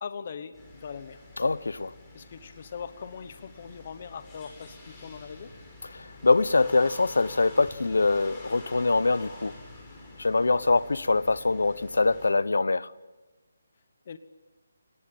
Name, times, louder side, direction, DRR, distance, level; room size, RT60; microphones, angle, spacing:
voice 1, 0.0-1.2 2.1-5.5 14.0-14.2, left 6 dB, 30° left, 1.1 m, -41 dB
sound 1, 0.5-12.3, left 2 dB, 10° left, 4.7 m, -47 dB
voice 2, 1.4-1.9 5.9-9.5 10.2-12.9, left 3 dB, 85° left, 1.1 m, -24 dB
29.5 x 19.0 x 8.9 m
hypercardioid pair, 175°, 0 cm